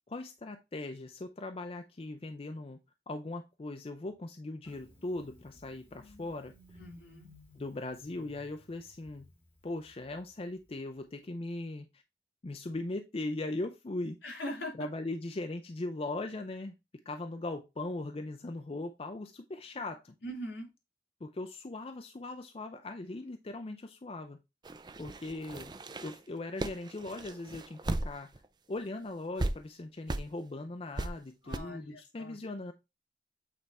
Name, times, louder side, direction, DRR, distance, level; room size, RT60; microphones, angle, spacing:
voice 1, 0.1-2.8 3.1-6.5 7.6-9.3 9.6-12.0 12.4-14.2 14.7-16.7 17.1-20.1 21.2-24.4 25.0-25.7 26.0-28.3 28.7-32.7, left 2 dB, 30° left, 0.5 m, -39 dB
Engine starting, 4.6-11.1, left 1 dB, 10° left, 2.1 m, -58 dB
voice 2, 6.8-7.3 14.2-14.7 20.2-20.7 31.4-32.4, equal, 75° left, 3.6 m, -41 dB
sound 1, 24.6-28.4 28.8-28.9 29.4-29.5 30.1-30.3 31.0-31.1 31.5-31.6, right 2 dB, 25° right, 0.5 m, -36 dB
8.5 x 3.3 x 4.1 m
head